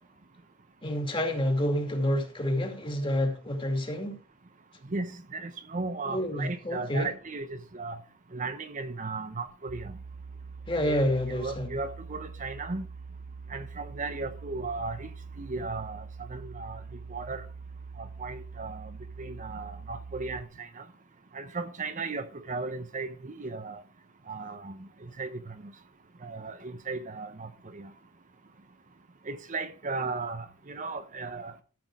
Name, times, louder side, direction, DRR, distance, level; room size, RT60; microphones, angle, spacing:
voice 1, 0.8-4.2 6.1-7.1 10.7-11.8, equal, 25° left, 2.4 m, -28 dB
voice 2, 4.9-8.0 8.3-10.0 10.9-11.0 11.4-12.9 13.5-15.1 15.4-16.0 16.3-16.8 17.1-17.4 18.0-18.9 19.2-20.8 21.3-23.8 24.3-24.7 25.2-25.5 26.2-27.9 29.3-31.5, right 3 dB, 40° right, 0.8 m, -36 dB
sound 1, 9.7-20.4, right 5 dB, 85° right, 0.9 m, -44 dB
13.0 x 6.1 x 4.7 m
head